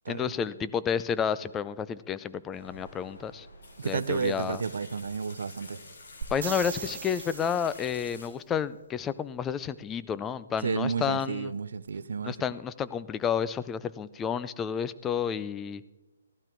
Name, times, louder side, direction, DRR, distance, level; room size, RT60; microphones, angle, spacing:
voice 1, 0.1-3.5 3.8-4.6 6.3-11.5 12.2-15.8, left 7 dB, 10° left, 16 dB, 0.4 m, -31 dB
sound 1, 2.5-8.3, left 2 dB, 65° left, 3.9 m, -49 dB
voice 2, 3.8-5.8 10.6-12.3, right 5 dB, 70° right, 16 dB, 0.6 m, -31 dB
sound 2, 6.2-8.1 11.9-12.0, right 7 dB, 55° right, 1.3 m, -38 dB
15.0 x 12.0 x 4.5 m, 1.1 s
hypercardioid pair, 160°, 0 cm